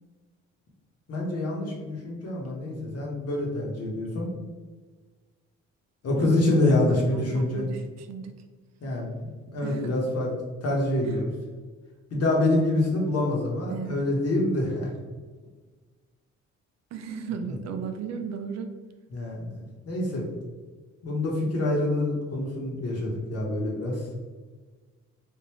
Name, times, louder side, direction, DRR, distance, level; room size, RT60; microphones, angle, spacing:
voice 1, 1.1-4.3 6.0-7.6 8.8-10.3 10.6-11.3 12.1-14.9 19.1-19.5 19.8-20.2 21.0-24.0, left 2 dB, 55° left, -2 dB, 1.1 m, -26 dB
voice 2, 6.2-8.3 9.6-10.0 11.0-11.2 13.7-14.1 16.9-18.7, right 6 dB, 60° right, 7 dB, 0.4 m, -36 dB
3.5 x 2.5 x 3.0 m, 1.4 s
cardioid pair, 90°, 30 cm